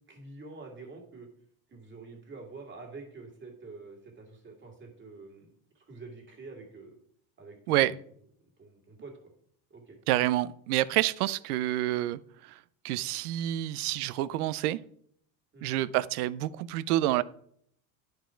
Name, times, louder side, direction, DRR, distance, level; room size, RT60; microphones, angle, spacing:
voice 1, 0.1-1.3 1.7-7.0 7.4-8.0 8.6-9.3 9.7-10.0 15.5-15.9, right 3 dB, 25° right, 1 dB, 2.4 m, -47 dB
voice 2, 10.1-12.6 12.8-14.8 15.6-17.2, right 15 dB, 85° right, 17 dB, 0.6 m, -28 dB
10.5 x 4.8 x 4.4 m, 0.66 s
supercardioid pair, 120°, 44 cm